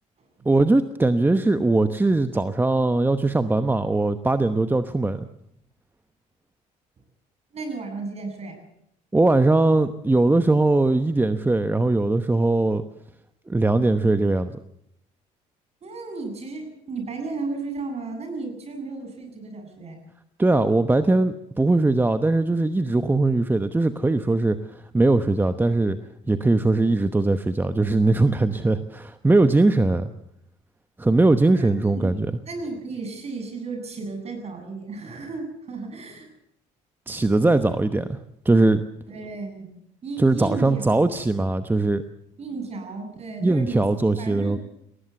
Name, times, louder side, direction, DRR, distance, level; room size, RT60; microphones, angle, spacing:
voice 1, 0.4-5.3 9.1-12.8 13.5-14.5 20.4-24.6 24.9-26.0 26.3-30.1 31.0-32.3 37.1-38.2 38.4-38.8 40.2-42.0 43.4-44.6, right 2 dB, 15° right, 10 dB, 1.0 m, -20 dB
voice 2, 7.5-8.6 15.8-20.0 31.4-31.7 31.9-36.3 39.1-39.7 40.0-41.0 42.4-44.6, right 3 dB, 45° right, 5 dB, 7.8 m, -34 dB
19.5 x 18.0 x 8.1 m, 0.75 s
supercardioid pair, 85°, 15 cm